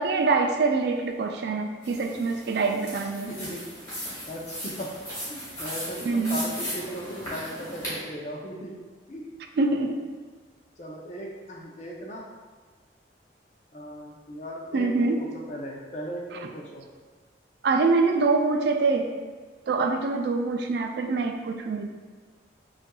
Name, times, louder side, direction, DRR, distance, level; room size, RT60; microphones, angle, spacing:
voice 1, 0.0-3.3 6.1-6.4 9.6-10.0 14.7-15.2 17.6-19.1 19.7-22.0, right 3 dB, 60° right, 4 dB, 0.3 m, -24 dB
sound 1, 1.8-8.0, equal, 15° left, 1.4 m, -37 dB
voice 2, 3.3-3.6 4.0-4.9 5.3-8.8 9.1-9.3 10.8-12.2 13.7-16.9, equal, 40° left, -1 dB, 0.5 m, -37 dB
5.4 x 2.5 x 2.3 m, 1.5 s
head